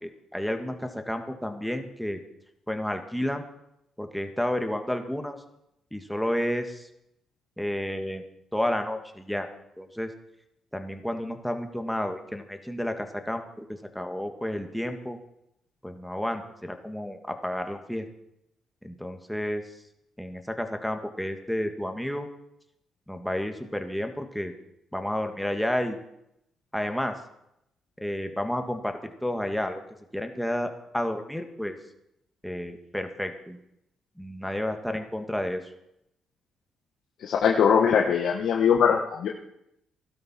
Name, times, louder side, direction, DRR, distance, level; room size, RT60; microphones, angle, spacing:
voice 1, 0.0-2.2 2.7-3.4 4.0-5.4 5.9-6.9 7.6-8.2 8.5-9.5 9.8-10.1 10.7-13.6 14.0-15.2 15.8-18.1 18.8-19.6 20.2-22.3 23.1-24.5 24.9-26.0 26.7-27.1 28.0-29.8 30.1-31.7 32.4-33.6 34.2-35.6, left 1 dB, ahead, 5 dB, 1.8 m, -31 dB
voice 2, 37.2-39.3, left 7 dB, 70° left, 1 dB, 1.4 m, -21 dB
16.5 x 12.0 x 4.4 m, 0.81 s
cardioid pair, 90°, 0 cm